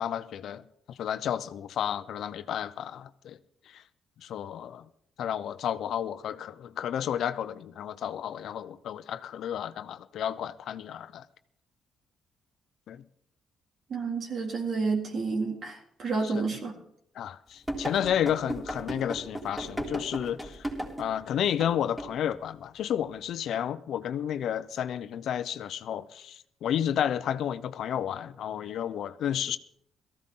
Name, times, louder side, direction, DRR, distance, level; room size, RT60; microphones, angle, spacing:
voice 1, 0.0-3.4 3.7-3.8 4.2-4.8 5.2-11.2 12.9-13.0 16.2-16.5 17.2-20.6 21.0-29.6, left 9 dB, 70° left, 0.8 m, -31 dB
voice 2, 13.9-16.7, right 4 dB, 55° right, 3.8 m, -30 dB
sound 1, 17.7-21.1 21.6-21.7 22.0-22.2, right 1 dB, 5° right, 3.7 m, -35 dB
18.0 x 14.5 x 3.8 m
cardioid pair, 90°, 0 cm